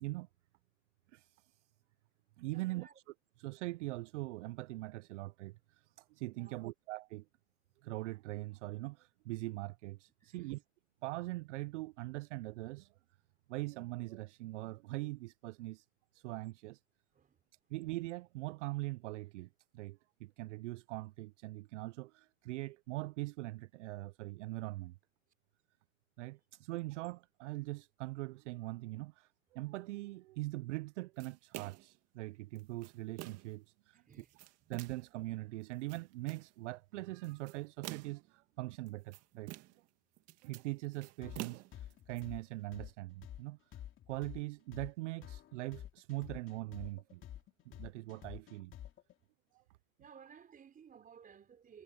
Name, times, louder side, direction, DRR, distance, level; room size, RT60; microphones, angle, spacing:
voice 1, 1.1-1.5 2.4-2.9 3.4-7.3 7.8-10.6 11.0-12.9 13.5-15.9 16.1-16.8 17.7-19.5 19.7-24.9 26.2-34.3 34.7-39.6 40.4-43.6 44.1-47.2 47.7-48.7 49.5-49.6, right 20 dB, 55° right, 0.6 m, -42 dB
voice 2, 2.4-2.9 6.3-6.7 10.2-10.5 17.1-17.4 33.9-34.3 50.0-51.8, right 7 dB, 20° right, 4.6 m, -58 dB
sound 1, 31.2-32.0 32.6-33.6 34.1-35.1 35.7-36.5 37.2-38.3 38.9-39.9 40.2-42.2, right 17 dB, 35° right, 2.0 m, -48 dB
sound 2, 41.2-49.1, left 11 dB, 25° left, 3.4 m, -49 dB
hypercardioid pair, 125°, 43 cm